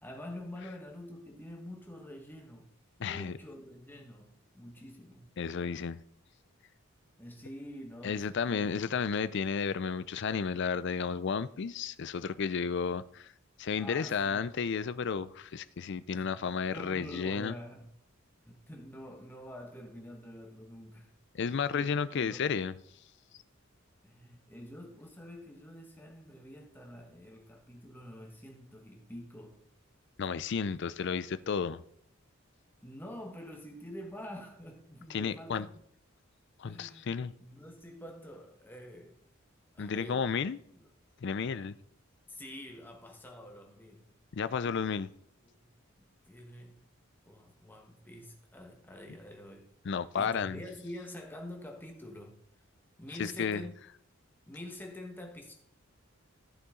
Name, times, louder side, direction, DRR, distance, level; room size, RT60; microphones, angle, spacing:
voice 1, 0.0-2.7 3.0-5.3 7.2-8.9 13.8-14.4 16.1-16.3 16.7-17.9 18.5-21.1 21.4-22.5 24.0-29.6 32.8-35.8 36.6-39.2 39.7-40.3 40.7-40.8 42.3-44.1 45.4-45.5 46.3-46.9 47.3-49.7 50.1-52.4 53.0-53.7 54.5-55.5, left 1 dB, 10° left, 1.4 m, -47 dB
voice 2, 3.0-3.4 5.4-6.0 8.0-13.3 13.6-17.5 21.3-22.8 30.2-31.8 35.1-35.7 36.6-37.3 39.8-40.6 41.2-41.8 44.3-45.1 49.8-50.6 53.2-53.6, left 6 dB, 55° left, 0.4 m, -32 dB
14.0 x 6.9 x 3.8 m
head